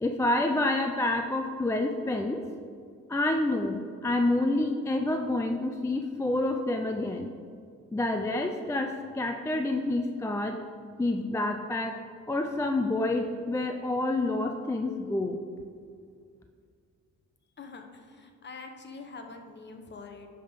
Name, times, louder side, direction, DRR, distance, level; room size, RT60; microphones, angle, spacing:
voice 1, 0.0-2.4 3.1-7.3 7.9-10.6 11.0-12.0 12.3-15.4, left 2 dB, 10° left, 4 dB, 0.4 m, -28 dB
voice 2, 17.6-20.3, left 4 dB, 35° left, 4 dB, 0.9 m, -45 dB
10.0 x 3.7 x 5.1 m, 2.2 s
cardioid pair, 90°, 30 cm